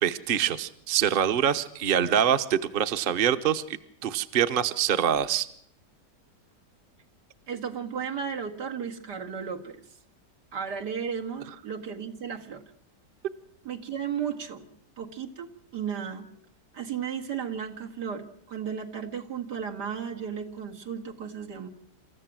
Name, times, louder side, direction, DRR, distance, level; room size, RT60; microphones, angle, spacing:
voice 1, 0.0-5.5, right 9 dB, 40° right, 10 dB, 0.9 m, -25 dB
voice 2, 7.5-9.8 10.5-12.6 13.6-14.7 15.0-16.3 16.7-21.7, right 7 dB, 85° right, 2 dB, 2.5 m, -34 dB
27.5 x 14.5 x 7.6 m, 0.67 s
omnidirectional pair, 1.8 m